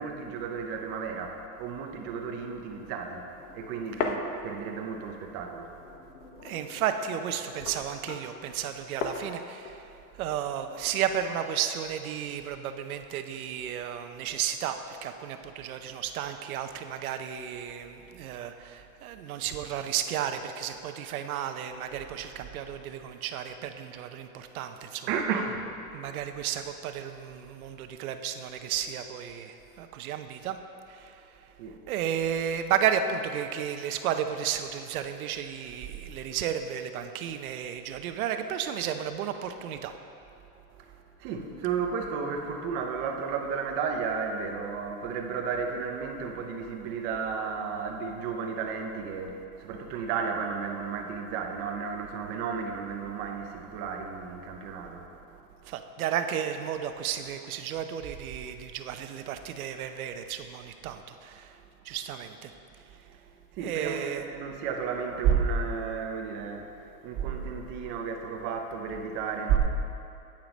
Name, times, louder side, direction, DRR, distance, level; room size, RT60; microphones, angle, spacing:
voice 1, 0.0-6.3 25.1-25.7 31.6-31.8 40.7-55.4 63.5-69.6, right 6 dB, 25° right, 3 dB, 0.6 m, -33 dB
sound 1, 3.2-5.1 5.4-11.4, left 4 dB, 60° left, 1.0 m, -39 dB
voice 2, 6.4-9.9 10.2-25.1 25.9-30.6 30.9-31.2 31.9-39.9 55.7-61.6 61.8-62.5 63.6-64.2, right 9 dB, 70° right, 8 dB, 0.8 m, -33 dB
8.9 x 7.4 x 5.2 m, 2.7 s
supercardioid pair, 170°, 44 cm